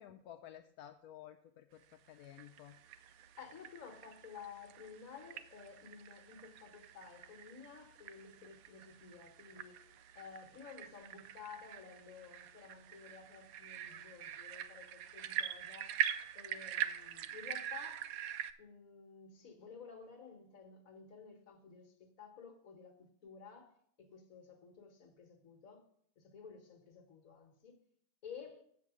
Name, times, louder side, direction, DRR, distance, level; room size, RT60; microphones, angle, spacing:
voice 1, 0.0-2.8, left 11 dB, 80° left, 1.1 m, -54 dB
sound 1, 2.1-18.5, right 10 dB, 75° right, 1.0 m, -44 dB
voice 2, 3.4-16.0 16.3-18.2 18.6-25.9 26.2-27.8 28.2-28.6, left 6 dB, 65° left, 1.7 m, -53 dB
8.1 x 7.4 x 4.9 m
omnidirectional pair, 1.6 m